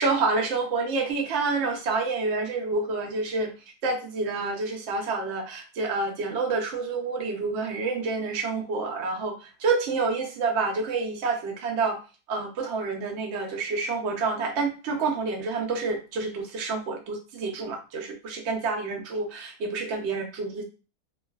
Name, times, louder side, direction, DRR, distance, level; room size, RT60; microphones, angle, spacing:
voice 1, 0.0-3.5 3.8-9.3 9.6-12.0 12.3-20.6, right 4 dB, 65° right, 2 dB, 0.7 m, -28 dB
3.1 x 2.4 x 2.2 m, 0.33 s
omnidirectional pair, 1.8 m